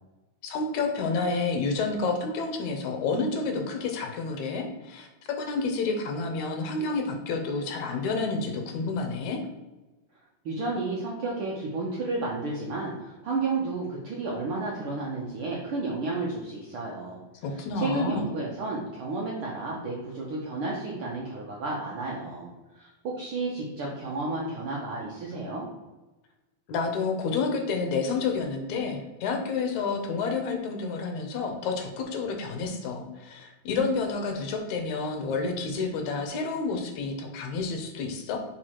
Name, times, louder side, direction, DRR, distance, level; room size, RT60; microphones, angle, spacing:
voice 1, 0.4-9.4 17.4-18.3 26.7-38.4, left 4 dB, 75° left, 4 dB, 2.0 m, -29 dB
voice 2, 10.4-17.2 17.5-22.5 22.7-25.7, right 3 dB, 70° right, -3 dB, 1.3 m, -32 dB
4.9 x 4.5 x 4.3 m, 1.1 s
omnidirectional pair, 3.6 m